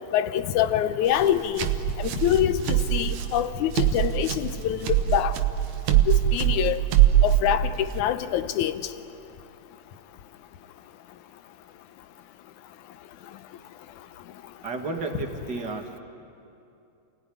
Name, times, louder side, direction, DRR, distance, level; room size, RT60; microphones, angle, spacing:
voice 1, 0.1-1.7 2.0-5.3 5.9-6.8 7.2-8.8, left 11 dB, 75° left, 11 dB, 2.1 m, -25 dB
sound 1, 1.1-8.0, right 12 dB, 70° right, 2.2 m, -23 dB
voice 2, 14.6-16.0, right 3 dB, 40° right, 3 dB, 2.0 m, -32 dB
28.5 x 18.0 x 9.9 m, 2.6 s
omnidirectional pair, 3.7 m